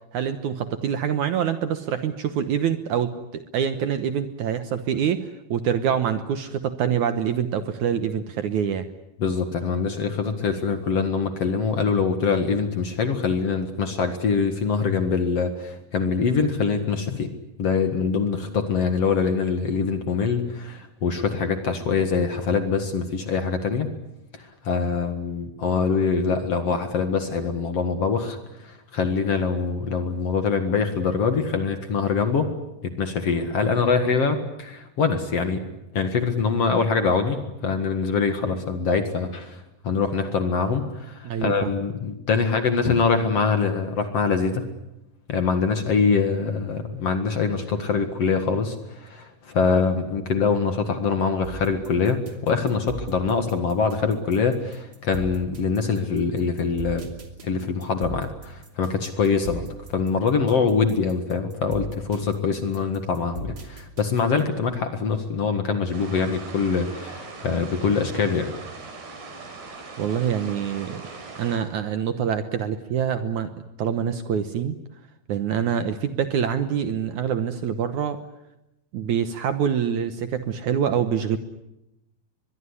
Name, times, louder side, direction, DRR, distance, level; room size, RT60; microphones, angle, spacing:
voice 1, 0.1-8.9 41.2-41.7 70.0-71.1 71.4-73.5 73.8-74.8 75.3-78.2 78.9-81.4, right 8 dB, 65° right, 9 dB, 2.2 m, -25 dB
voice 2, 9.2-17.3 17.6-23.9 24.3-32.5 32.8-35.6 35.9-44.6 45.3-57.0 57.4-68.5, left 5 dB, 50° left, 7 dB, 2.3 m, -24 dB
sound 1, 51.4-64.6, right 2 dB, 30° right, 2.8 m, -39 dB
sound 2, 65.9-71.6, right 3 dB, 90° right, 6.8 m, -40 dB
23.0 x 22.5 x 10.0 m, 0.89 s
omnidirectional pair, 4.4 m